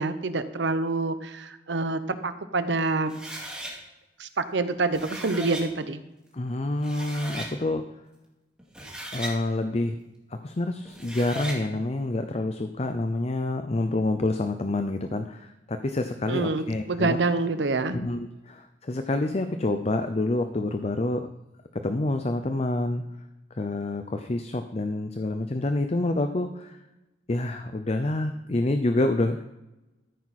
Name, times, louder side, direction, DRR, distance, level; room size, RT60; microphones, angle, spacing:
voice 1, 0.0-3.1 4.2-6.0 16.3-18.0, right 3 dB, 75° right, 11 dB, 0.8 m, -27 dB
sound 1, 3.1-3.7 4.7-5.7 6.5-6.6 6.8-7.5 8.6-9.4 10.8-11.6, right 1 dB, 5° right, 2.3 m, -37 dB
voice 2, 6.3-7.8 9.1-10.0 10.3-17.2 17.9-21.3 21.7-23.0 23.6-26.8 27.3-29.4, left 2 dB, 35° left, 8 dB, 0.6 m, -27 dB
13.5 x 9.3 x 4.2 m, 0.99 s
head